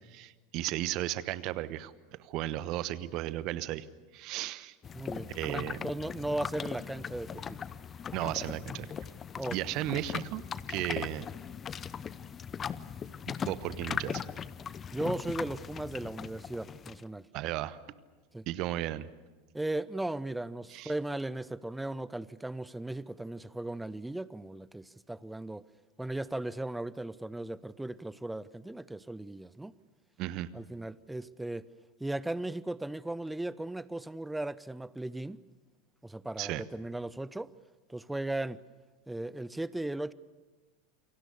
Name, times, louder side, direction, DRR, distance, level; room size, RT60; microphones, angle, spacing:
voice 1, 0.1-1.9 2.2-3.9 4.1-4.7 5.3-5.8 8.1-8.9 9.5-10.4 10.7-11.2 13.4-14.2 17.3-17.8 18.5-19.1 20.7-20.9 30.2-30.5 36.4-36.6, right 14 dB, 50° right, 1.1 m, -34 dB
sound 1, 4.8-17.0, left 7 dB, 30° left, 0.8 m, -39 dB
voice 2, 4.9-7.6 9.3-9.6 14.9-17.3 18.3-18.4 19.5-25.6 26.0-29.7 30.5-31.7 32.0-35.4 36.0-37.5 37.9-38.6 39.1-40.1, right 1 dB, 5° right, 0.8 m, -37 dB
28.5 x 23.5 x 6.9 m
figure-of-eight pair, 85°, 0 cm